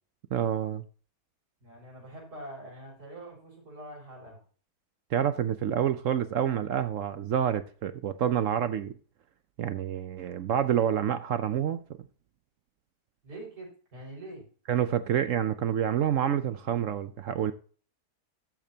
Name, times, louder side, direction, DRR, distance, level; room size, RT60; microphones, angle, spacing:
voice 1, 0.3-0.8 5.1-8.9 9.6-11.8 14.7-17.5, right 9 dB, 65° right, 0.9 m, -28 dB
voice 2, 1.6-4.4 13.2-14.4, right 1 dB, 85° right, 6.6 m, -44 dB
13.5 x 8.7 x 2.8 m
omnidirectional pair, 1.7 m